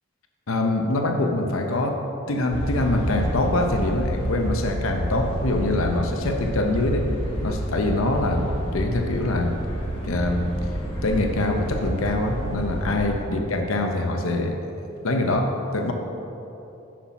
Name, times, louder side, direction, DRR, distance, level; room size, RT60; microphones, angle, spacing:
voice 1, 0.5-2.0 2.3-7.1 7.4-9.5 10.0-10.5 11.0-14.6 15.0-15.9, left 2 dB, 90° left, 4 dB, 0.7 m, -24 dB
sound 1, 2.5-13.2, equal, 25° left, 1.2 m, -29 dB
6.2 x 5.9 x 5.9 m, 3.0 s
head